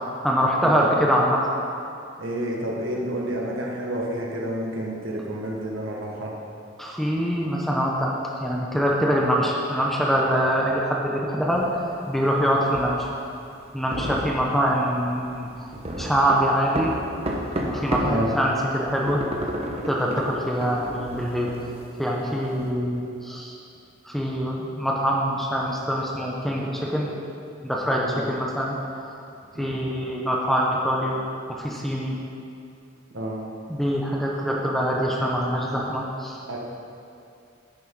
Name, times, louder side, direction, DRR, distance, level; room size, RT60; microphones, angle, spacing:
voice 1, 0.2-1.4 6.8-8.1 8.4-11.7 12.1-13.1 13.7-15.5 16.0-16.9 17.6-19.2 19.9-21.5 22.0-23.6 24.0-27.1 27.6-28.8 29.6-31.2 31.5-32.2 33.7-36.4, equal, ahead, -3 dB, 0.9 m, -24 dB
voice 2, 2.2-6.4 18.0-18.3 28.0-28.2 29.5-29.9 33.1-33.5 36.5-36.6, right 1 dB, 90° right, -2 dB, 1.5 m, -29 dB
sound 1, 11.5-18.2 18.6-22.7, equal, 30° right, 1.0 m, -32 dB
10.5 x 9.3 x 3.8 m, 2.5 s
head